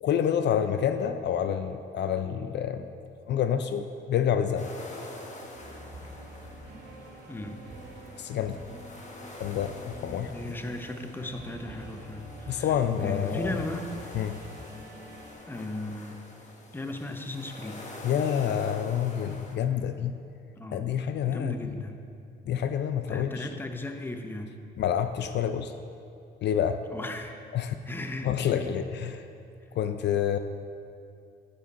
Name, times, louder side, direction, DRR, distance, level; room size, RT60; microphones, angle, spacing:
voice 1, 0.0-2.9 3.3-4.7 8.2-8.6 9.4-10.5 12.5-13.6 14.1-14.4 18.0-20.1 20.7-21.8 22.5-23.5 24.8-25.7 26.4-26.8 27.5-27.7 28.2-29.3 29.8-30.4, left 9 dB, 60° left, 9 dB, 0.4 m, -28 dB
sound 1, 4.5-19.6, left 2 dB, 35° left, 1.2 m, -46 dB
sound 2, 5.5-15.3, right 1 dB, 55° right, 1.8 m, -46 dB
voice 2, 7.3-7.6 10.3-13.9 15.5-16.2 16.7-17.9 20.5-20.9 21.2-22.0 23.1-24.6 26.9-27.4 27.9-28.7, left 1 dB, 10° left, 5 dB, 0.6 m, -36 dB
9.8 x 5.2 x 4.0 m, 2.5 s
cardioid pair, 90°, 20 cm